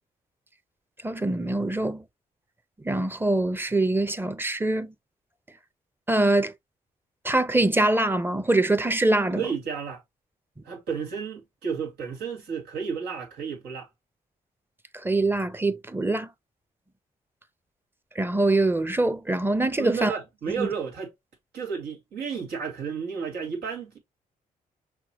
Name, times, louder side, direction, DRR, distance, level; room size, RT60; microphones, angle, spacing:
voice 1, 1.0-2.0 2.8-4.9 6.1-6.5 7.2-9.5 15.0-16.3 18.2-20.1 20.5-20.7, right 2 dB, 15° right, 0.6 m, -24 dB
voice 2, 9.3-10.0 10.6-13.9 19.8-21.1 21.5-24.0, right 6 dB, 90° right, 1.6 m, -32 dB
5.9 x 2.2 x 3.0 m
cardioid pair, 65°, 16 cm